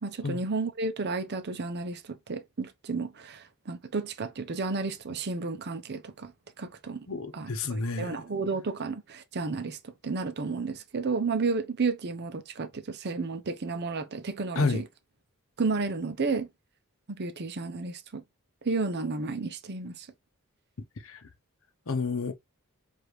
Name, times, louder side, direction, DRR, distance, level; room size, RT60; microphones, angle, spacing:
voice 1, 0.0-6.3 6.6-7.1 7.3-7.5 8.0-14.8 15.6-16.5 17.1-18.2 18.6-20.1, right 4 dB, 50° right, 0.6 m, -32 dB
voice 2, 7.1-8.2 14.6-14.8 21.0-21.2 21.9-22.3, left 4 dB, 65° left, 0.7 m, -30 dB
4.9 x 2.6 x 3.1 m
head